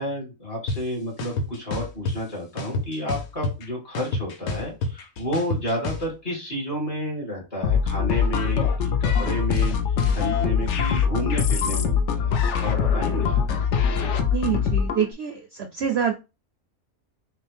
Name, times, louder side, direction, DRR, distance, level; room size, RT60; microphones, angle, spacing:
voice 1, 0.0-9.8 10.1-13.4, equal, 40° left, -2 dB, 2.4 m, -31 dB
sound 1, 0.7-0.8 1.2-2.2 2.6-3.6 3.9-6.0, left 2 dB, 85° left, 1.3 m, -27 dB
sound 2, 7.6-15.1, left 6 dB, 65° left, 0.8 m, -23 dB
voice 2, 14.3-16.1, right 8 dB, 65° right, 4 dB, 0.6 m, -26 dB
5.7 x 2.2 x 3.3 m, 0.28 s
omnidirectional pair, 1.5 m